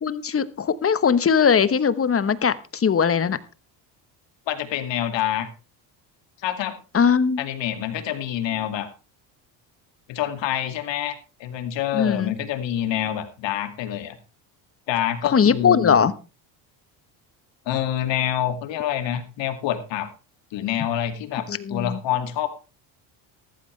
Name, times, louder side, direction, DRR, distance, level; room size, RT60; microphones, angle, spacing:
voice 1, 0.0-3.4 6.9-7.4 11.9-12.3 15.3-16.1 21.5-22.0, left 6 dB, 30° left, 15 dB, 1.1 m, -20 dB
voice 2, 4.5-5.5 6.4-6.8 7.4-8.9 10.1-14.2 14.9-16.0 17.7-20.1 20.5-22.5, left 11 dB, 65° left, 8 dB, 2.4 m, -27 dB
14.0 x 13.0 x 3.3 m, 0.31 s
supercardioid pair, 95°, 46 cm